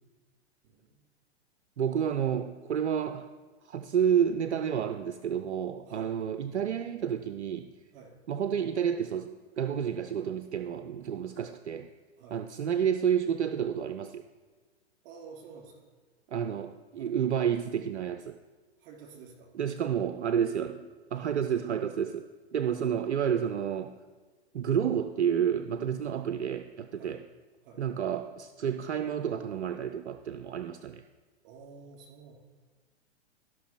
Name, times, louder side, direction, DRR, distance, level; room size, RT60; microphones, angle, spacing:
voice 1, 0.6-1.0 5.8-6.2 7.9-8.2 12.2-12.4 15.0-15.9 17.0-17.2 18.8-19.5 21.1-21.3 22.6-22.8 27.0-27.2 27.6-27.8 31.4-32.3, right 5 dB, 40° right, -1 dB, 3.3 m, -50 dB
voice 2, 1.8-3.3 3.6-7.7 8.3-11.9 12.3-14.2 16.3-18.4 19.5-23.9 24.5-27.2 27.8-31.0, right 8 dB, 75° right, 9 dB, 0.5 m, -30 dB
13.0 x 6.0 x 4.5 m, 1.4 s
figure-of-eight pair, 105°, 34 cm